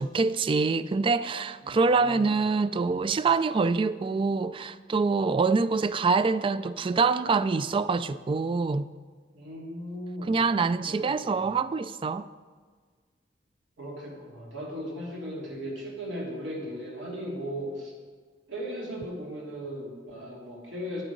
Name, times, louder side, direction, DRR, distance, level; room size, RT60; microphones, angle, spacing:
voice 1, 0.0-8.9 10.3-12.3, right 4 dB, 30° right, 0.3 m, -25 dB
voice 2, 1.6-2.3 9.3-10.4 10.8-11.5 13.8-17.9 18.5-21.0, equal, 90° right, 3.1 m, -37 dB
9.6 x 9.2 x 5.1 m
head